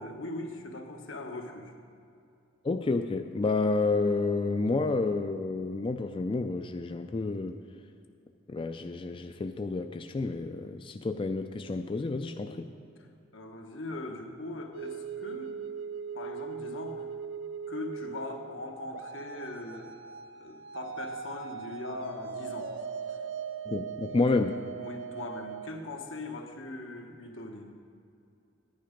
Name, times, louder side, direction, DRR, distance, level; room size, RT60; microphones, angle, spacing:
voice 1, 0.0-1.7 12.3-13.1 13.3-15.6 16.1-17.1 17.7-19.9 20.3-22.7 23.1-23.2 24.8-27.7, left 2 dB, 80° left, 3 dB, 1.3 m, -40 dB
voice 2, 2.6-7.6 8.5-12.7 23.7-24.6, left 3 dB, 25° left, 7 dB, 0.3 m, -30 dB
sound 1, 14.7-25.7, right 6 dB, 75° right, 0.7 m, -40 dB
10.5 x 9.9 x 5.1 m, 2.5 s
head